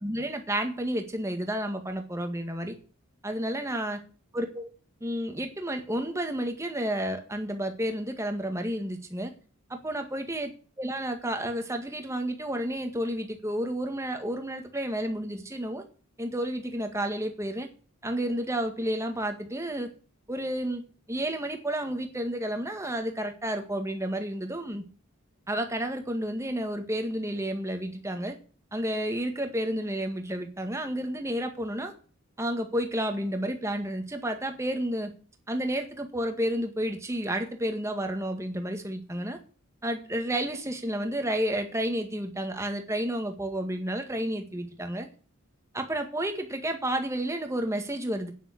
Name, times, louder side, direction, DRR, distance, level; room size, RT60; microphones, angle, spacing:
voice 1, 0.0-2.7 3.2-4.0 4.3-4.7 5.0-9.3 9.7-10.5 10.8-15.8 16.2-17.7 18.0-19.9 20.3-20.8 21.1-24.8 25.5-28.4 28.7-31.9 32.4-35.1 35.5-39.4 39.8-45.1 45.7-48.3, right 1 dB, 15° right, 5 dB, 1.8 m, -31 dB
9.3 x 7.3 x 8.4 m, 0.38 s
head